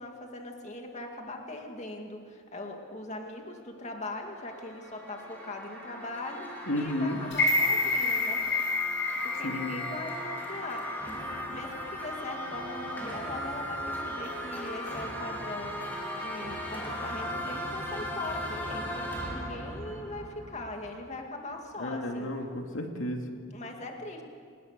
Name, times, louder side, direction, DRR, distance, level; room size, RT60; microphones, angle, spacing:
voice 1, 0.0-6.5 6.8-8.4 9.2-11.2 11.5-22.3 23.5-24.2, left 2 dB, 35° left, 2 dB, 2.3 m, -40 dB
sound 1, 4.1-21.1, equal, 10° left, 4.1 m, -38 dB
voice 2, 6.7-7.2 9.4-9.8 21.8-23.3, left 1 dB, 80° left, 3 dB, 2.4 m, -32 dB
sound 2, 7.3-11.4 11.8-11.9, left 3 dB, 60° left, 5.6 m, -29 dB
29.5 x 19.5 x 6.8 m, 2.1 s
head